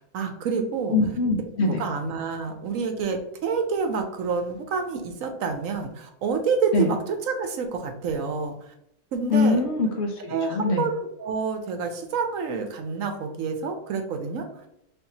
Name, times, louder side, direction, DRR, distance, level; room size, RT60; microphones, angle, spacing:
voice 1, 0.1-1.0 1.6-8.5 9.1-9.6 10.3-14.4, right 5 dB, 70° right, 5 dB, 1.0 m, -28 dB
voice 2, 0.9-1.8 6.7-6.9 9.3-10.8, left 3 dB, 60° left, 2 dB, 0.8 m, -23 dB
4.4 x 3.5 x 2.7 m, 0.79 s
omnidirectional pair, 1.5 m